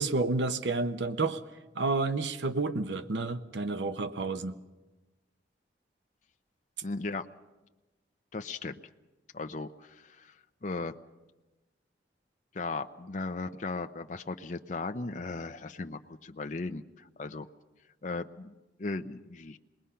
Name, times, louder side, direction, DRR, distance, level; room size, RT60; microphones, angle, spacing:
voice 1, 0.0-1.4 1.7-4.6, right 3 dB, 80° right, 10 dB, 0.9 m, -30 dB
voice 2, 6.8-7.3 8.3-8.8 9.3-10.3 10.6-10.9 12.5-17.5 18.0-19.6, left 3 dB, 45° left, 7 dB, 0.6 m, -37 dB
27.0 x 20.5 x 5.7 m, 1.1 s
head